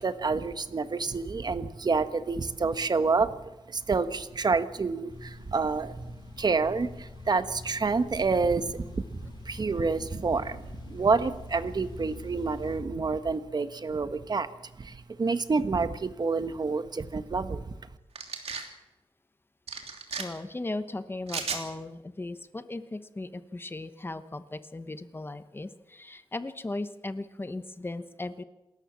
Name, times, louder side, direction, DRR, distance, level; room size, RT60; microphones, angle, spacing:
voice 1, 0.0-3.4 3.7-14.5 14.8-17.8, right 4 dB, 40° right, 11 dB, 1.2 m, -28 dB
sound 1, 5.1-12.8, left 1 dB, 45° left, 4.9 m, -44 dB
sound 2, 18.2-18.7 19.7-20.2 21.3-21.6, right 5 dB, 80° right, 3.1 m, -34 dB
voice 2, 20.2-28.4, left 2 dB, 20° left, 11 dB, 1.0 m, -37 dB
28.0 x 13.5 x 7.4 m, 1.0 s
wide cardioid pair, 135°, 10 cm